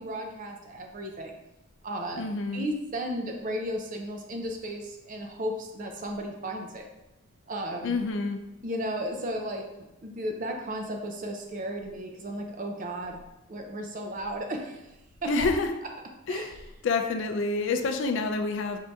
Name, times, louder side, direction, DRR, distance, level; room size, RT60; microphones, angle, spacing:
voice 1, 0.0-1.4 1.8-2.2 2.5-6.8 7.5-8.0 8.6-9.7 10.0-13.2 13.5-14.9 15.2-15.5 16.3-16.6, right 1 dB, 40° right, 3 dB, 0.5 m, -34 dB
voice 2, 2.2-2.7 7.8-8.4 15.3-15.7 16.3-16.5 16.8-18.8, left 3 dB, 60° left, 6 dB, 0.4 m, -28 dB
5.2 x 2.7 x 3.4 m, 0.95 s
head